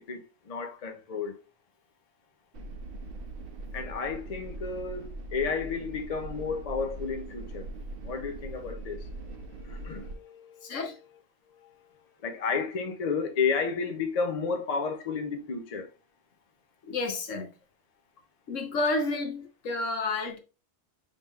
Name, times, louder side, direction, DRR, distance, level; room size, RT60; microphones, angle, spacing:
voice 1, 0.0-1.4 3.7-7.7 8.0-10.8 11.5-11.7 12.2-15.9, left 5 dB, 55° left, 0.4 m, -32 dB
sound 1, 2.5-10.1, right 2 dB, 55° right, 0.9 m, -41 dB
voice 2, 10.6-11.0 16.8-17.5 18.5-20.4, left 2 dB, 80° left, 1.3 m, -30 dB
5.5 x 3.5 x 2.3 m
omnidirectional pair, 1.3 m